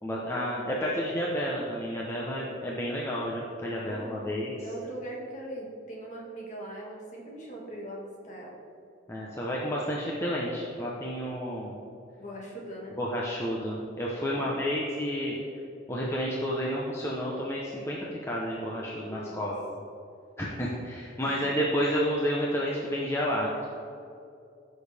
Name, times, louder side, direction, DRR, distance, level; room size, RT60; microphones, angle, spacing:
voice 1, 0.0-4.5 9.1-11.7 13.0-15.4 15.9-19.5 20.4-23.7, equal, 15° left, -5 dB, 0.9 m, -30 dB
voice 2, 3.8-4.3 4.6-8.6 12.2-13.0 14.3-14.6 19.0-19.5 21.2-21.5, right 1 dB, 40° left, -3 dB, 2.0 m, -41 dB
15.5 x 6.5 x 3.5 m, 2.6 s
head